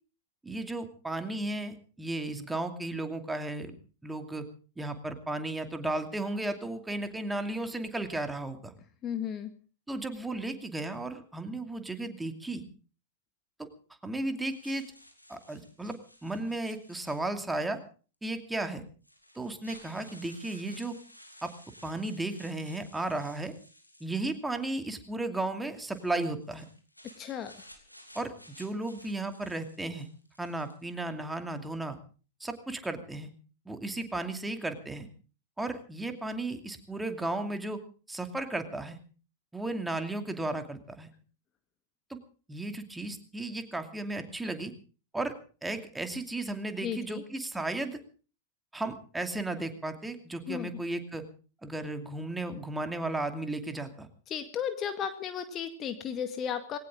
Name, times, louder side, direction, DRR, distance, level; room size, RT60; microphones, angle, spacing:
voice 1, 0.4-3.7 4.0-4.5 4.8-8.7 9.9-12.6 13.6-13.7 14.0-14.8 15.3-17.8 18.2-18.8 19.3-21.0 21.4-21.5 21.8-23.5 24.0-26.7 28.1-30.1 30.4-32.0 32.4-33.3 33.7-35.1 35.6-37.8 38.1-39.0 39.5-41.1 42.1-42.2 42.5-44.7 45.1-45.3 45.6-48.0 48.7-51.2 51.6-54.1, right 2 dB, 5° right, 7 dB, 2.6 m, -34 dB
voice 2, 9.0-9.5 27.2-27.6 46.8-47.2 50.5-50.8 54.3-56.8, left 8 dB, 30° left, 8 dB, 1.8 m, -34 dB
sound 1, 14.5-17.6 18.5-18.6 19.0-24.8 25.7-30.9, left 1 dB, 90° left, 3.2 m, -55 dB
21.0 x 18.0 x 3.7 m, 0.38 s
figure-of-eight pair, 90°, 0 cm